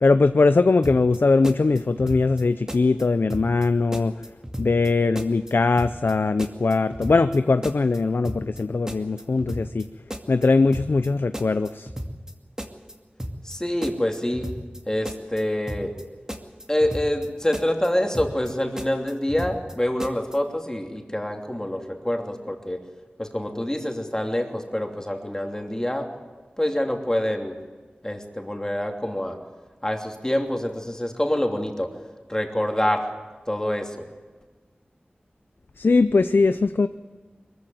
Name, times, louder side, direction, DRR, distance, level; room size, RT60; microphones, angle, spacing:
voice 1, 0.0-4.1 4.6-9.8 10.3-11.9 35.8-36.9, left 3 dB, 80° left, 11 dB, 0.6 m, -20 dB
sound 1, 0.8-1.2 1.4-2.4 2.7-3.0 3.3-3.7 3.9-4.9 5.1-5.5 5.8-6.1 6.4-7.4 7.6-8.0 8.2-8.6 8.9-9.8 10.1-10.5 10.7-11.1 11.3-12.3 12.6-12.9 13.2-13.6 13.8-14.8 15.0-15.4 15.7-16.0 16.3-17.3 17.5-17.9 18.1-18.5 18.8-19.7 20.0-20.4, equal, 15° right, 2.4 m, -34 dB
voice 2, 13.4-14.5 14.9-15.9 16.7-22.8 23.2-26.1 26.6-27.6 28.0-29.4 29.8-31.9 32.3-33.0 33.5-34.0, left 1 dB, 20° left, 3 dB, 3.0 m, -26 dB
22.5 x 15.0 x 9.3 m, 1.4 s
wide cardioid pair, 60°, 4 cm